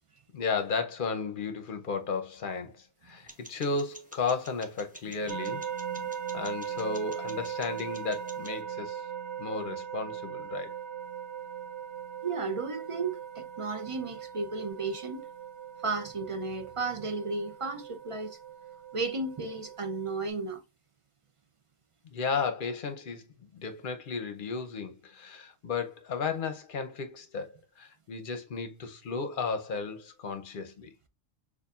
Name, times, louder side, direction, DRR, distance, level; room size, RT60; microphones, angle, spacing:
voice 1, 0.3-5.6 6.3-9.0 9.4-10.7 22.1-30.9, left 4 dB, 50° left, 0.8 m, -34 dB
sound 1, 3.3-8.6, equal, 10° right, 0.8 m, -51 dB
sound 2, 5.3-20.3, right 8 dB, 70° right, 0.8 m, -39 dB
voice 2, 12.2-15.3 15.8-18.4 18.9-20.6, right 3 dB, 50° right, 0.4 m, -34 dB
6.7 x 2.5 x 2.4 m
omnidirectional pair, 1.2 m